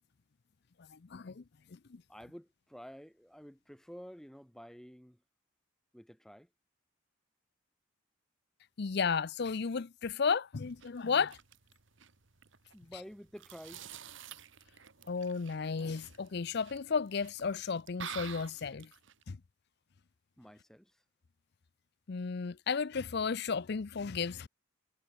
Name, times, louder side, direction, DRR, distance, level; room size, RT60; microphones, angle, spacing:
voice 1, 0.9-1.4 8.8-11.4 15.1-18.9 19.3-19.4 22.1-24.5, left 5 dB, 50° left, 0.5 m, -33 dB
voice 2, 2.1-5.2 5.9-6.5 12.7-14.0 20.4-21.0, equal, ahead, 2.2 m, -51 dB
sound 1, 10.6-19.2, right 8 dB, 65° right, 1.5 m, -50 dB
head